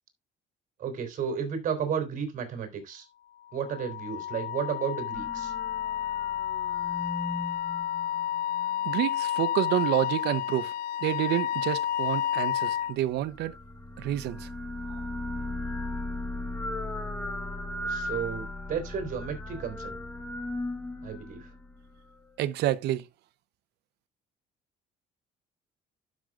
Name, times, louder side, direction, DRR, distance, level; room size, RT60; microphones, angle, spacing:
voice 1, 0.8-3.1 3.5-5.5 17.8-20.0 21.0-21.5, right 7 dB, 50° right, 3.9 m, -33 dB
Wind instrument woodwind instrument, 3.5-12.9, left 11 dB, 80° left, 0.5 m, -31 dB
sound 1, 5.1-8.7 13.0-22.2, left 1 dB, 10° left, 0.8 m, -37 dB
voice 2, 8.8-10.7 11.0-13.5 14.0-14.5 14.9-15.0 22.4-23.1, right 13 dB, 75° right, 0.8 m, -28 dB
12.5 x 6.4 x 2.4 m
cardioid pair, 110°, 17 cm